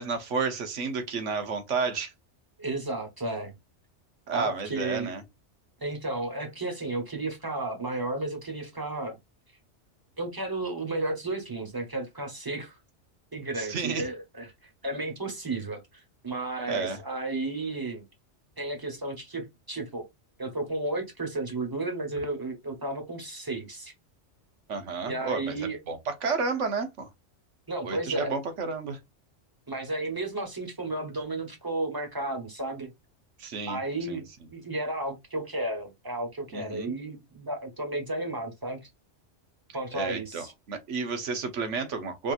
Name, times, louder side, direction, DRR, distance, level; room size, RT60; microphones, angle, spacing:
voice 1, 0.0-2.1 4.3-5.2 13.6-14.0 16.7-17.0 24.7-27.1 27.8-29.0 33.4-33.8 34.1-34.2 36.5-36.9 39.9-42.3, right 4 dB, 85° right, 1.3 m, -31 dB
voice 2, 2.6-3.5 4.3-5.1 5.8-9.2 10.2-12.8 13.3-14.5 14.8-18.0 18.6-20.0 20.4-23.9 25.1-25.8 27.7-28.4 29.7-32.9 33.7-38.9 39.7-40.5, right 2 dB, 20° right, 1.1 m, -33 dB
5.1 x 2.8 x 2.5 m
omnidirectional pair, 1.2 m